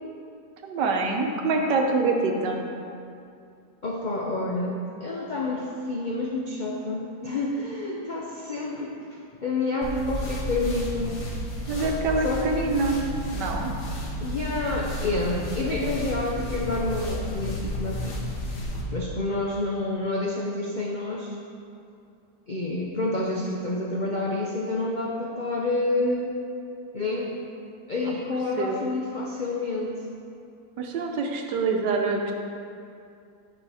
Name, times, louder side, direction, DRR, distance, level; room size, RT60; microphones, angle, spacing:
voice 1, 0.6-2.7 11.7-13.1 13.3-13.7 28.6-28.8 30.8-32.3, right 3 dB, 90° right, 2 dB, 1.5 m, -25 dB
voice 2, 3.8-11.2 12.2-12.5 14.2-18.2 18.9-21.4 22.5-26.3 26.9-27.4 27.9-30.0, left 2 dB, 75° left, -2 dB, 0.4 m, -28 dB
sound 1, 9.8-18.8, equal, 50° left, 1.4 m, -32 dB
9.7 x 5.0 x 4.9 m, 2.5 s
omnidirectional pair, 1.8 m